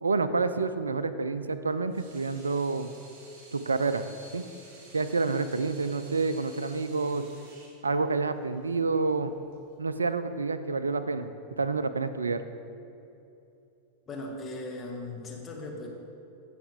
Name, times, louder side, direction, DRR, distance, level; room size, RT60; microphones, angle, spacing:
voice 1, 0.0-2.9 3.5-4.0 4.3-4.4 4.9-7.3 7.8-9.3 9.8-11.3 11.6-12.4, right 4 dB, 75° right, 12 dB, 0.4 m, -28 dB
Water tap faucet / Sink (filling or washing), 1.7-9.8, right 2 dB, 40° right, 2.3 m, -53 dB
voice 2, 14.1-15.9, left 2 dB, 20° left, -1 dB, 1.6 m, -38 dB
16.0 x 5.7 x 3.6 m, 2.8 s
figure-of-eight pair, 90°, 0 cm